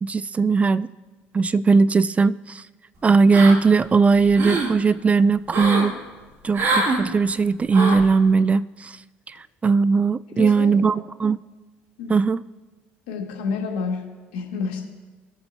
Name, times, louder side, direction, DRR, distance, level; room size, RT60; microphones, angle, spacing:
voice 1, 0.0-0.9 1.3-2.6 3.0-6.0 6.4-9.0 9.3-9.4 9.6-11.4 12.1-12.4, right 4 dB, 25° right, 18 dB, 0.3 m, -19 dB
sound 1, 3.3-3.8 4.2-4.7 5.5-5.9 6.5-7.0 7.7-8.1, right 2 dB, 50° right, 2.3 m, -24 dB
voice 2, 10.3-11.0 12.0-12.2 13.1-14.8, left 5 dB, 90° left, 0 dB, 1.9 m, -30 dB
20.5 x 7.0 x 2.8 m, 1.3 s
supercardioid pair, 75°, 5 cm